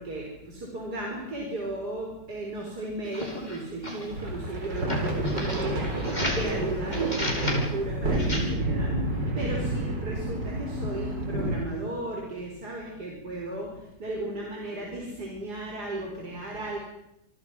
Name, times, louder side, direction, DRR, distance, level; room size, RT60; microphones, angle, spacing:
voice 1, 0.0-5.9 6.3-8.9 9.4-13.7 14.0-16.8, right 2 dB, 65° right, -1 dB, 5.3 m, -35 dB
sound 1, 3.0-4.1 4.8-6.5 6.9-7.6 8.1-8.4, left 1 dB, 25° left, 5.7 m, -33 dB
sound 2, 4.1-11.6, right 1 dB, 80° right, 5.0 m, -29 dB
28.0 x 24.0 x 6.1 m, 0.83 s
omnidirectional pair, 1.9 m